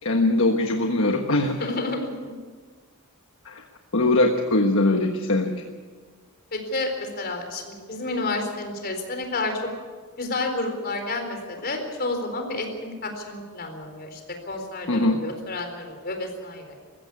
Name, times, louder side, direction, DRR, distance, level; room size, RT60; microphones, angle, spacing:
voice 1, 0.0-1.7 3.4-3.6 3.9-5.5 14.9-15.2, left 2 dB, 65° left, 4 dB, 1.4 m, -21 dB
voice 2, 1.4-2.3 6.5-9.6 10.2-16.7, left 2 dB, 45° left, 5 dB, 4.2 m, -30 dB
21.5 x 15.5 x 8.3 m, 1.5 s
head